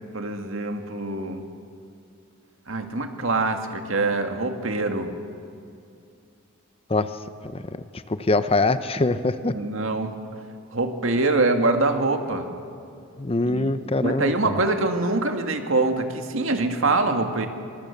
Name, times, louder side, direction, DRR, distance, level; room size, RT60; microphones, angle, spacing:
voice 1, 0.1-1.4 2.7-5.1 9.5-10.1 10.7-12.5 13.4-13.7 14.0-17.5, right 2 dB, 65° right, 5 dB, 2.0 m, -24 dB
voice 2, 8.3-9.5 13.2-14.3, left 2 dB, 25° left, 12 dB, 0.7 m, -22 dB
23.5 x 21.0 x 7.2 m, 2.5 s
head